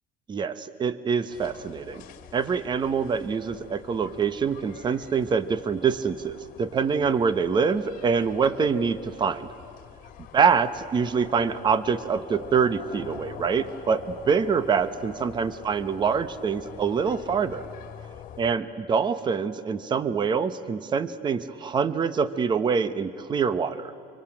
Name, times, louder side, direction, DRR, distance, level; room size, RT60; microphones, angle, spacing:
voice 1, 0.3-2.0 2.3-9.5 10.3-17.6 18.4-23.9, right 6 dB, 30° right, 13 dB, 1.0 m, -25 dB
sound 1, 1.3-18.6, left 9 dB, 55° left, 2.0 m, -45 dB
25.5 x 25.0 x 8.9 m, 2.4 s
cardioid pair, 135°, 16 cm